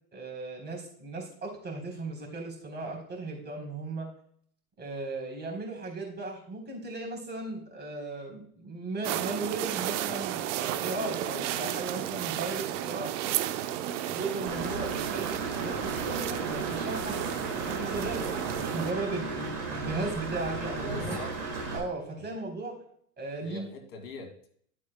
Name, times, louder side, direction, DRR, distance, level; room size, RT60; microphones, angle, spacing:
voice 1, 0.1-4.1 4.8-13.1 14.1-17.2 17.6-21.2 21.7-22.8 23.2-23.7, right 3 dB, 20° right, 0 dB, 3.6 m, -36 dB
sound 1, 9.0-18.9, right 12 dB, 50° right, 0.7 m, -33 dB
Engine / Mechanisms, 14.5-21.8, right 3 dB, 85° right, 3.5 m, -35 dB
voice 2, 20.9-21.4 22.2-22.3 23.4-24.5, left 2 dB, 70° left, 4 dB, 2.2 m, -43 dB
11.5 x 8.4 x 2.2 m, 0.62 s
hypercardioid pair, 100°, 47 cm